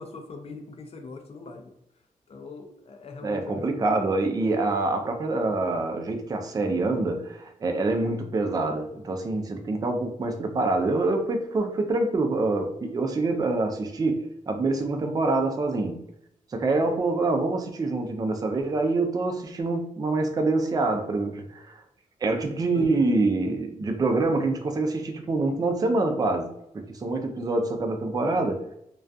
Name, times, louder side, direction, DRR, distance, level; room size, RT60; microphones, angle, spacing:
voice 1, 0.0-1.7 2.3-3.8 22.7-23.2, left 4 dB, 45° left, 4 dB, 0.5 m, -41 dB
voice 2, 3.2-16.0 16.5-21.8 22.2-28.7, right 2 dB, 25° right, 4 dB, 0.3 m, -26 dB
2.3 x 2.2 x 2.5 m, 0.78 s
wide cardioid pair, 105°, 15 cm